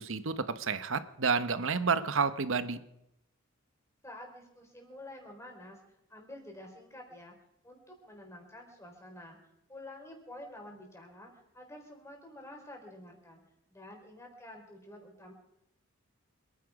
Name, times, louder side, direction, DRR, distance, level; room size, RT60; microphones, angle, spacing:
voice 1, 0.0-2.8, right 5 dB, 65° right, 13 dB, 0.9 m, -30 dB
voice 2, 4.0-5.8 6.1-7.4 7.6-9.4 9.7-13.4 13.7-15.3, left 1 dB, 15° left, 1 dB, 4.2 m, -49 dB
26.5 x 10.0 x 4.8 m, 0.81 s
head